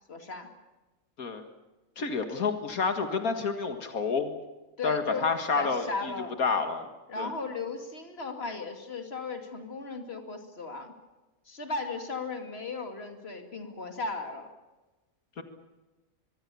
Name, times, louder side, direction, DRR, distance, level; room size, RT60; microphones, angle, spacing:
voice 1, 0.1-0.5 4.8-5.3 5.6-6.3 7.1-10.9 11.5-14.5, left 3 dB, 45° left, 5 dB, 2.9 m, -36 dB
voice 2, 2.0-4.3 4.8-6.1 6.4-6.9 7.2-7.3 15.4-15.5, left 4 dB, 90° left, 7 dB, 2.3 m, -29 dB
24.0 x 23.0 x 7.0 m, 1.1 s
omnidirectional pair, 1.5 m